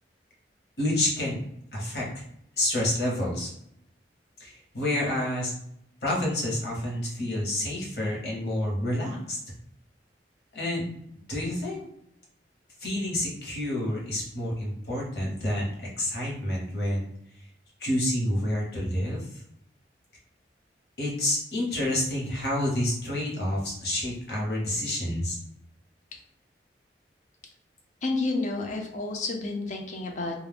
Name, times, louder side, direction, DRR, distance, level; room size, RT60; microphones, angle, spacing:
voice 1, 0.8-1.4 1.7-2.2 2.6-3.5 4.4-5.5 6.0-9.4 10.5-10.8 11.3-11.9 12.8-17.1 17.8-19.3 21.0-25.4, left 1 dB, 65° left, -4 dB, 1.0 m, -28 dB
voice 2, 28.0-30.4, left 3 dB, 45° left, 2 dB, 0.5 m, -30 dB
2.3 x 2.1 x 3.3 m, 0.75 s
head